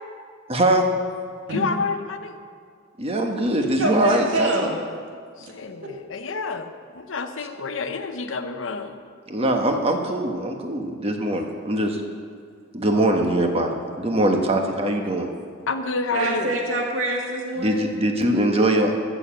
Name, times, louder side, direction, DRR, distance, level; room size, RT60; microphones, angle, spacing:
voice 1, 0.5-0.9 3.0-4.5 9.3-12.0 12.7-13.7 14.0-15.3 17.6-18.9, right 1 dB, 30° right, 3 dB, 1.4 m, -22 dB
voice 2, 1.5-2.4 5.4-9.0 15.7-16.6, left 4 dB, 70° left, 7 dB, 0.8 m, -29 dB
voice 3, 3.8-4.7 5.8-5.9 16.1-17.9, right 1 dB, 75° right, 0 dB, 2.4 m, -24 dB
13.5 x 7.3 x 7.6 m, 2.1 s
head